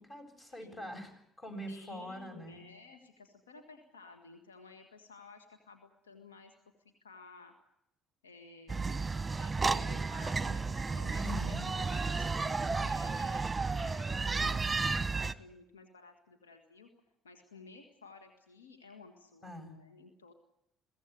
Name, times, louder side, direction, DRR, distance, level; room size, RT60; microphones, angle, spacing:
voice 1, 0.0-2.7 11.2-11.7 19.4-19.8, left 1 dB, 30° left, 7 dB, 7.8 m, -44 dB
voice 2, 1.7-6.5 6.8-7.5 8.2-9.0 9.4-16.9 17.2-20.3, left 4 dB, 85° left, 5 dB, 1.8 m, -54 dB
sound 1, 8.7-15.3, right 4 dB, 20° right, 1.2 m, -32 dB
23.0 x 16.5 x 9.6 m, 0.79 s
hypercardioid pair, 50°, 0 cm